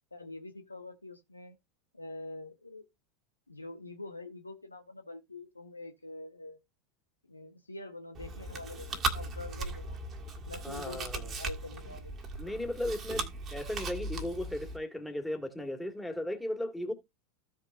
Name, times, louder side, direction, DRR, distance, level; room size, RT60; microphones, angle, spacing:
voice 1, 0.1-1.6 1.9-2.8 3.5-6.6 7.3-10.0 10.5-12.1, left 2 dB, 85° left, 1.0 m, -45 dB
Chewing mastication, 8.1-14.8, right 3 dB, 30° right, 1.7 m, -38 dB
voice 2, 10.6-11.3 12.4-13.2 13.5-16.9, left 1 dB, 5° left, 2.1 m, -36 dB
15.0 x 5.3 x 2.5 m
figure-of-eight pair, 85°, 0 cm